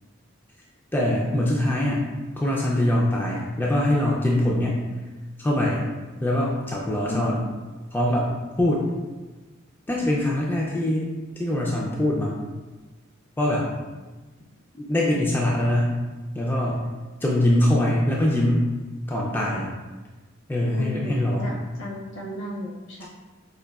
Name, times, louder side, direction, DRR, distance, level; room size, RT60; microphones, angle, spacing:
voice 1, 0.9-2.1 2.4-4.8 5.4-5.8 6.2-7.4 7.9-8.3 8.6-8.9 9.9-11.1 11.4-12.4 13.4-13.7 14.7-15.9 16.3-16.8 17.2-18.7 19.1-19.7 20.5-21.6, left 1 dB, 10° left, -4 dB, 0.3 m, -23 dB
voice 2, 7.1-7.4 20.7-21.1 21.4-23.1, left 1 dB, 65° left, -2 dB, 0.8 m, -34 dB
4.8 x 2.5 x 2.3 m, 1.3 s
head